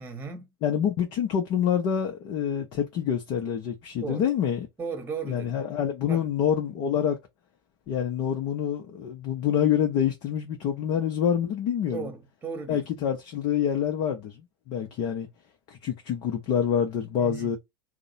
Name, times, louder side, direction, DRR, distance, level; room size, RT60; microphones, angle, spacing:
voice 1, 0.0-0.5 4.0-4.3 4.8-5.5 6.1-6.3 11.9-12.8 17.2-17.5, right 5 dB, 15° right, 1.0 m, -36 dB
voice 2, 0.6-4.7 5.2-7.2 7.9-12.1 12.7-15.3 15.7-17.6, left 8 dB, 45° left, 0.7 m, -27 dB
2.8 x 2.1 x 3.9 m
figure-of-eight pair, 85°, 12 cm